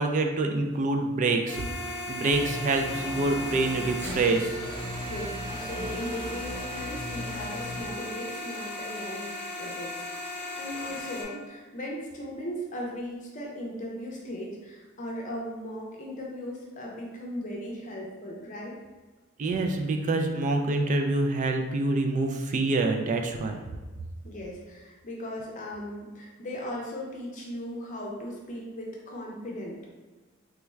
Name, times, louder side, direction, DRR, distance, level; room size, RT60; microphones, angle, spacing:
voice 1, 0.0-1.8 2.1-4.6 19.4-23.6, right 2 dB, 35° right, 4 dB, 0.3 m, -26 dB
sound 1, 1.5-11.2, left 1 dB, 10° left, 1.0 m, -37 dB
sound 2, 2.3-7.8, left 1 dB, 15° right, 1.1 m, -39 dB
voice 2, 5.1-18.7 24.2-29.8, equal, 40° left, -2 dB, 0.6 m, -37 dB
3.4 x 2.3 x 3.1 m, 1.2 s
head